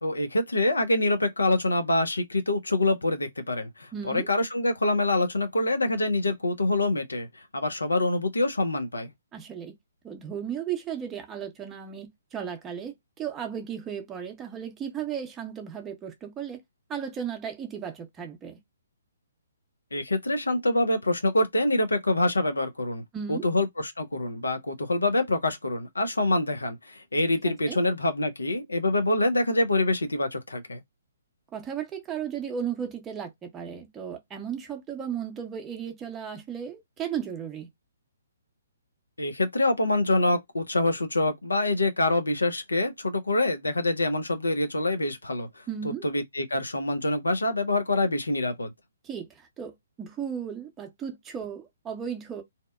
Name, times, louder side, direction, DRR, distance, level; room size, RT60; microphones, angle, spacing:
voice 1, 0.0-9.1 19.9-23.0 23.3-30.8 39.2-45.6 46.0-48.7, left 2 dB, 80° left, 0.5 m, -25 dB
voice 2, 3.9-4.3 9.3-9.7 10.0-16.6 16.9-18.6 23.1-23.5 27.4-27.8 31.5-37.7 45.7-46.0 49.0-52.4, right 8 dB, 15° right, 0.7 m, -35 dB
2.7 x 2.1 x 2.2 m
figure-of-eight pair, 130°, 0 cm